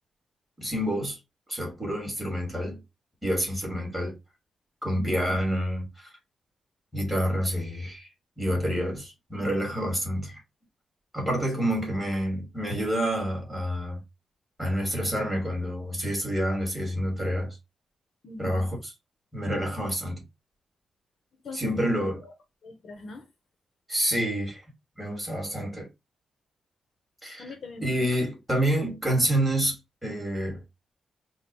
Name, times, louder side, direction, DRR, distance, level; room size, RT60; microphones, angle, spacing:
voice 1, 0.6-1.2 1.5-2.8 3.2-4.1 4.8-6.1 6.9-8.1 8.4-10.4 11.1-14.0 14.6-17.6 18.4-18.7 19.3-20.3 21.5-22.2 23.9-24.6 25.0-25.9 27.2-27.4 27.8-30.6, equal, 5° right, 2.5 m, -28 dB
voice 2, 5.0-5.4 11.6-11.7 18.2-18.7 21.4-22.3 22.6-23.3 27.4-28.1, left 3 dB, 55° left, 0.9 m, -40 dB
4.3 x 2.4 x 4.6 m
wide cardioid pair, 155°, 0 cm